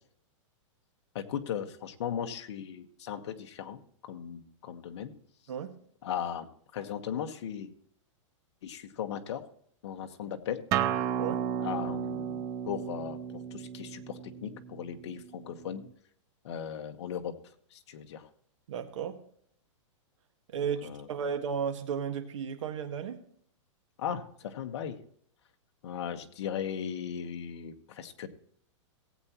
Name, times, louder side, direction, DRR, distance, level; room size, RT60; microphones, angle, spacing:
voice 1, 1.1-3.8 4.1-5.1 6.0-6.5 6.7-7.7 8.6-9.4 9.8-10.6 11.6-12.4 12.7-15.8 16.4-17.3 17.7-18.2 20.8-21.1 24.0-25.0 25.8-28.3, left 8 dB, 55° left, 5 dB, 1.3 m, -37 dB
Acoustic guitar, 10.7-15.9, right 9 dB, 20° right, 0.5 m, -34 dB
voice 2, 18.7-19.2 20.5-23.2, right 7 dB, 70° right, 7 dB, 1.7 m, -34 dB
18.5 x 8.4 x 3.0 m, 0.63 s
supercardioid pair, 160°, 17 cm